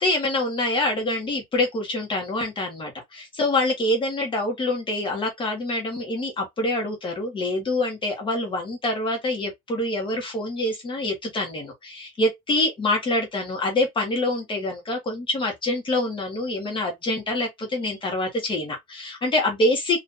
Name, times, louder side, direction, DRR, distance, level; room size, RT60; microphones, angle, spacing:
voice 1, 0.0-20.0, left 2 dB, 30° left, 1.4 m, -26 dB
3.8 x 2.8 x 2.5 m
cardioid pair, 140°, 18 cm